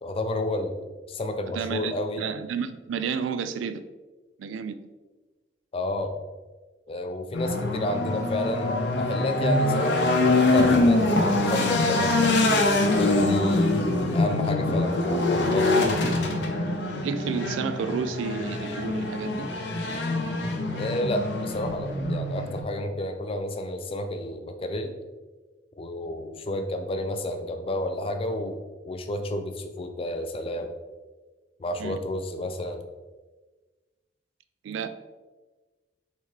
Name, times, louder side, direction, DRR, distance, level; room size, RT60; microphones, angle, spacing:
voice 1, 0.0-2.3 5.7-6.1 6.9-10.0 10.5-12.3 12.9-13.8 14.1-16.0 20.8-24.9 25.8-30.7 31.6-32.8, left 1 dB, 30° left, 6 dB, 0.4 m, -31 dB
voice 2, 1.5-3.8 4.4-4.8 17.0-19.5 31.8-32.0 34.6-34.9, right 6 dB, 85° right, 12 dB, 0.3 m, -31 dB
sound 1, 7.3-22.6, left 2 dB, 65° left, 0.6 m, -24 dB
4.5 x 3.5 x 3.2 m, 1.3 s
head